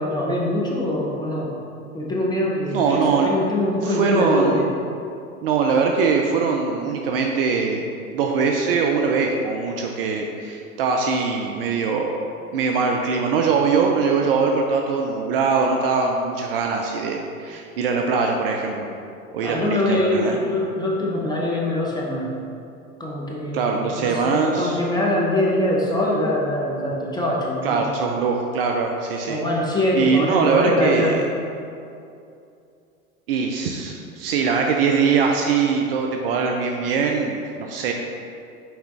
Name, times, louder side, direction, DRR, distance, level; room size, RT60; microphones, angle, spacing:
voice 1, 0.0-1.5 1.9-4.7 19.4-22.3 23.0-27.9 29.3-31.2, left 1 dB, 10° left, -3 dB, 0.8 m, -23 dB
voice 2, 2.6-3.3 3.8-4.6 5.4-7.9 8.1-12.2 12.5-18.9 19.3-20.4 23.5-24.8 27.6-29.4 29.9-31.2 33.3-37.9, right 5 dB, 45° right, 2 dB, 0.5 m, -22 dB
6.1 x 4.9 x 3.2 m, 2.5 s
figure-of-eight pair, 95°, 43 cm